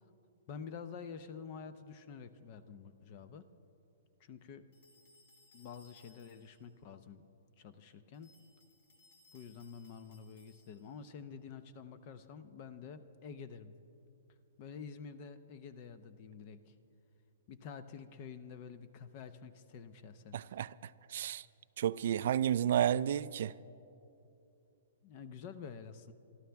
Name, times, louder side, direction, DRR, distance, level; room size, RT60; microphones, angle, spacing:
voice 1, 0.5-3.5 4.2-4.6 5.5-7.2 7.6-8.3 9.3-13.7 14.6-16.7 17.5-20.4 25.0-26.1, left 6 dB, 30° left, 0.6 m, -48 dB
sound 1, 4.7-6.7 8.1-11.0, left 3 dB, 55° left, 3.1 m, -66 dB
voice 2, 20.3-21.5 21.8-23.5, right 10 dB, 55° right, 0.3 m, -32 dB
26.5 x 12.5 x 3.5 m
hypercardioid pair, 170°, 0 cm